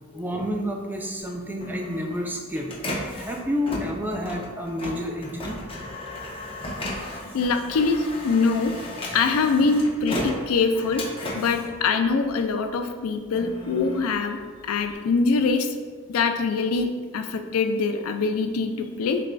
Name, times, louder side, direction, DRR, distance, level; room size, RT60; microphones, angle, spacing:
voice 1, 0.1-2.7 3.1-5.6, equal, 10° right, 1 dB, 0.3 m, -30 dB
Printer, 1.2-12.6 13.1-14.9, left 1 dB, 25° left, 0.7 m, -35 dB
voice 2, 7.3-8.7 9.1-11.0 11.3-15.7 16.1-16.9 17.1-19.2, left 4 dB, 90° left, 6 dB, 0.4 m, -23 dB
6.4 x 2.5 x 2.2 m, 1.5 s
head